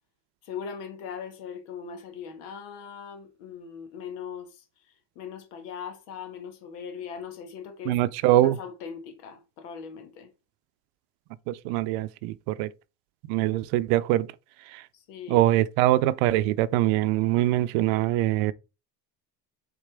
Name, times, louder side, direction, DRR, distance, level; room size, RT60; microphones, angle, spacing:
voice 1, 0.4-4.6 5.1-8.0 8.3-10.3 14.9-15.4, left 7 dB, 90° left, 1.7 m, -40 dB
voice 2, 7.9-8.6 11.5-12.7 13.3-14.3 14.7-14.8 15.3-18.5, right 15 dB, 80° right, 0.6 m, -23 dB
8.2 x 4.2 x 3.4 m
cardioid pair, 160°, 46 cm